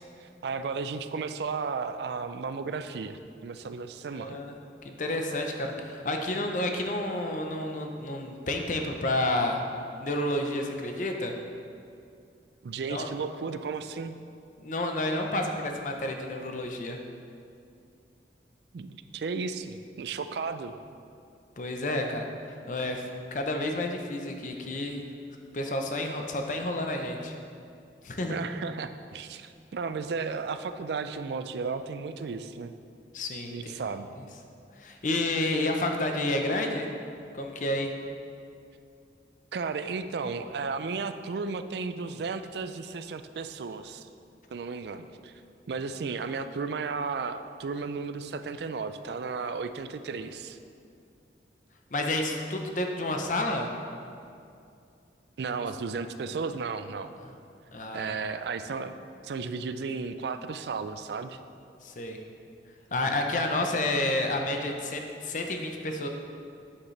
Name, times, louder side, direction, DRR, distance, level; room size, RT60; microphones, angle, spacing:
voice 1, 0.0-4.4 12.6-14.2 18.7-20.8 28.3-32.7 33.5-34.1 39.5-44.1 44.5-45.3 45.7-50.6 55.4-57.1 57.9-58.9 59.2-61.4, right 4 dB, 70° right, 10 dB, 0.4 m, -34 dB
voice 2, 4.1-4.5 4.8-9.6 10.0-11.3 12.9-13.1 14.6-17.0 21.6-25.0 25.5-27.4 28.0-28.4 33.1-33.7 34.8-36.9 37.3-37.9 51.9-53.7 57.7-58.2 61.8-62.2 62.9-66.1, left 1 dB, 45° left, 4 dB, 0.7 m, -30 dB
8.7 x 7.2 x 3.2 m, 2.5 s
head